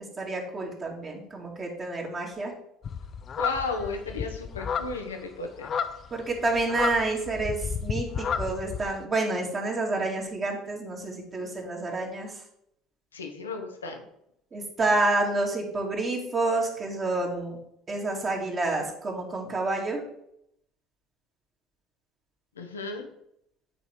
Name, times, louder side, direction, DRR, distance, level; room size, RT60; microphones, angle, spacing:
voice 1, 0.2-2.5 6.1-12.3 14.5-17.6 17.9-20.0, right 2 dB, 35° right, -1 dB, 2.3 m, -29 dB
sound 1, 2.8-9.0, left 6 dB, 45° left, 0.6 m, -32 dB
voice 2, 3.4-5.7 13.1-14.0 22.6-23.1, left 3 dB, 90° left, 4 dB, 1.1 m, -34 dB
9.1 x 4.2 x 4.7 m, 0.76 s
hypercardioid pair, 65°, 0 cm